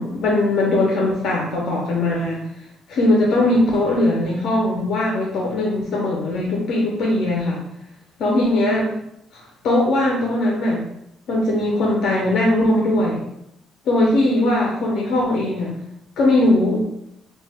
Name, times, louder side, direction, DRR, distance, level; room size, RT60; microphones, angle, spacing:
voice 1, 0.0-2.4 2.9-7.6 8.2-8.9 9.3-10.8 11.3-13.2 13.9-15.7 16.2-16.9, left 1 dB, 75° left, -2 dB, 0.5 m, -20 dB
3.0 x 2.1 x 3.3 m, 0.79 s
cardioid pair, 115°, 0 cm